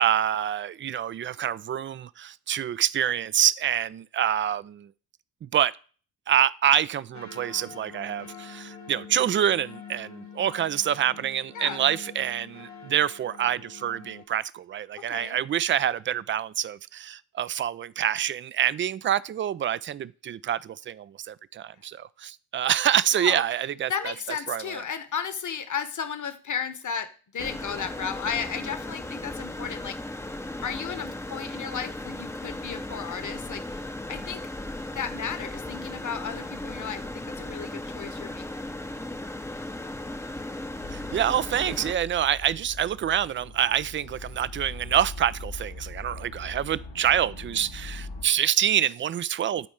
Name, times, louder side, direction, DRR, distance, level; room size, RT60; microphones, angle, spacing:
voice 1, 0.0-4.9 5.4-5.7 6.3-24.1 24.5-24.8 40.9-49.7, right 10 dB, 30° right, 0.3 m, -26 dB
sound 1, 7.1-14.2, left 6 dB, 90° left, 1.3 m, -45 dB
voice 2, 15.0-15.4 23.1-23.4 23.9-30.0 30.6-34.4 34.9-38.4, left 7 dB, 40° left, 1.1 m, -34 dB
sound 2, 27.4-41.9, left 1 dB, 5° left, 0.7 m, -36 dB
sound 3, 40.8-48.3, left 2 dB, 75° left, 3.1 m, -41 dB
10.5 x 4.2 x 4.8 m
hypercardioid pair, 40°, 48 cm